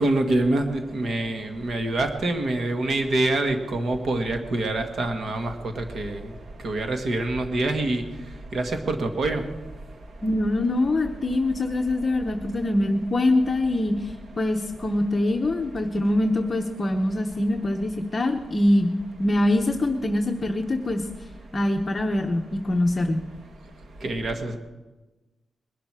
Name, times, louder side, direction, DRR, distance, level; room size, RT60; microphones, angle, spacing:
voice 1, 0.0-6.2 6.6-8.0 8.5-9.4 24.0-24.6, right 2 dB, 50° right, 5 dB, 1.7 m, -25 dB
voice 2, 10.2-21.0 21.5-23.2, left 1 dB, 25° left, 3 dB, 0.8 m, -24 dB
21.0 x 12.0 x 4.8 m, 1.1 s
wide cardioid pair, 175°, 0 cm